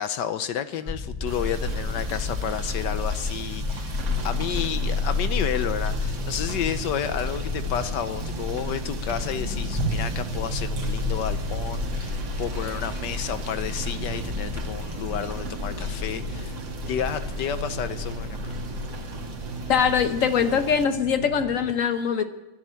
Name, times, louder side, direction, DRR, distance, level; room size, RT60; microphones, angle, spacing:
voice 1, 0.0-16.6 16.9-18.6, left 9 dB, 65° left, 12 dB, 1.2 m, -31 dB
sound 1, 0.9-19.7, left 4 dB, 15° left, 0.7 m, -32 dB
Rain / Motor vehicle (road), 1.2-20.8, right 3 dB, 65° right, 2.3 m, -35 dB
sound 2, 4.0-21.7, right 2 dB, 35° right, 5.6 m, -39 dB
voice 2, 19.7-22.2, left 7 dB, 50° left, 9 dB, 1.1 m, -22 dB
13.0 x 10.5 x 9.7 m, 1.0 s
omnidirectional pair, 2.3 m